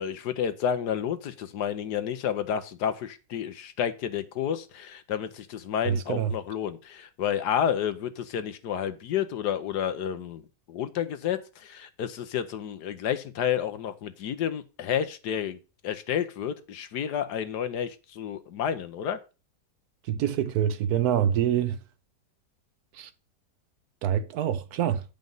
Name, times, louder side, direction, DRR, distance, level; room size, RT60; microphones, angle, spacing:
voice 1, 0.0-10.4 10.7-19.2, left 9 dB, 70° left, 1.4 m, -30 dB
voice 2, 5.8-6.3 20.1-21.8 22.9-23.1 24.0-25.0, right 9 dB, 70° right, 1.1 m, -26 dB
9.3 x 5.2 x 5.4 m
omnidirectional pair, 1.9 m